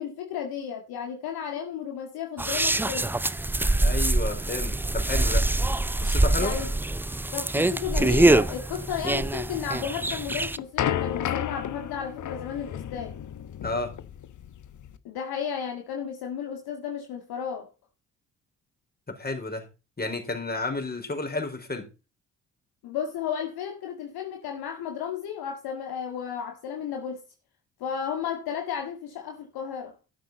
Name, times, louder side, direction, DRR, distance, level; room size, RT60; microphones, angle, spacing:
voice 1, 0.0-3.1 6.4-6.7 7.3-13.2 15.0-17.7 22.8-27.2 27.8-30.0, left 8 dB, 60° left, 1.9 m, -33 dB
sound 1, 2.4-10.6, right 2 dB, 5° right, 0.5 m, -24 dB
voice 2, 3.8-5.5 6.0-6.6 13.6-13.9 19.2-19.7 20.0-21.9, left 2 dB, 20° left, 4.6 m, -31 dB
sound 2, 10.0-15.0, left 10 dB, 45° left, 1.1 m, -32 dB
12.0 x 9.4 x 4.1 m
figure-of-eight pair, 40°, 42 cm